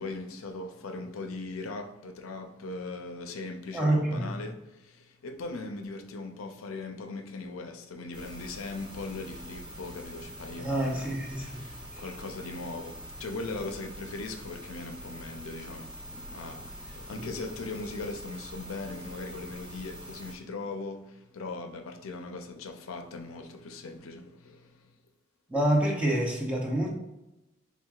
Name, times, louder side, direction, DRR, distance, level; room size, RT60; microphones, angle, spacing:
voice 1, 0.0-24.9, left 3 dB, 80° left, 5 dB, 0.5 m, -39 dB
voice 2, 3.7-4.3 10.6-11.6 17.2-17.3 25.5-26.9, right 1 dB, 5° right, -3 dB, 0.7 m, -27 dB
sound 1, 8.1-20.3, equal, 25° right, 1.3 m, -44 dB
4.5 x 3.5 x 2.4 m, 0.97 s
head